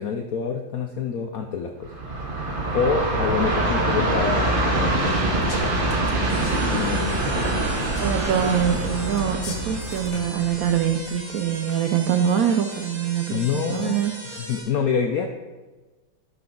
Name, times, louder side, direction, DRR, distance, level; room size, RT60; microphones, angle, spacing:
voice 1, 0.0-1.9 2.7-5.8 6.5-7.3 13.3-14.0 14.3-15.3, left 6 dB, 80° left, 4 dB, 0.8 m, -27 dB
Train, 1.8-11.0, right 2 dB, 35° right, 1.0 m, -24 dB
sound 1, 5.3-5.6 5.9-6.6 7.8-8.2 9.2-10.4, left 3 dB, 45° left, 0.8 m, -41 dB
sound 2, 6.3-14.6, right 2 dB, 70° right, 3.1 m, -39 dB
voice 2, 8.0-14.1, right 8 dB, 90° right, 6 dB, 0.7 m, -24 dB
11.5 x 5.9 x 3.7 m, 1.3 s
omnidirectional pair, 2.1 m